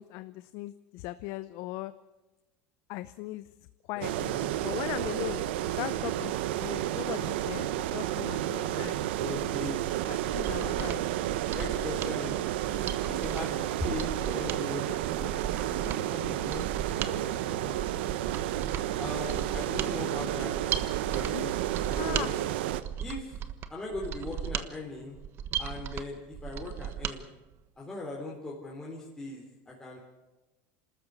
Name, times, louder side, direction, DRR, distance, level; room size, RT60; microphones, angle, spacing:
voice 1, 0.0-1.9 2.9-3.5 3.9-9.0 10.1-11.4 21.3-21.4 22.0-22.3, left 17 dB, 65° left, 13 dB, 0.7 m, -39 dB
sound 1, 4.0-22.8, right 13 dB, 85° right, 1.0 m, -31 dB
voice 2, 4.2-4.5 9.2-9.9 11.4-12.4 13.1-15.3 15.7-16.7 17.0-17.9 19.0-20.6 21.1-21.5 21.9-22.3 23.0-23.4 23.7-25.2 25.6-27.2 27.8-30.0, left 2 dB, 10° left, -4 dB, 3.9 m, -39 dB
Mechanisms, 10.1-27.2 27.5-27.6, right 9 dB, 45° right, 1.2 m, -37 dB
26.5 x 13.5 x 8.4 m, 1.1 s
supercardioid pair, 130°, 6 cm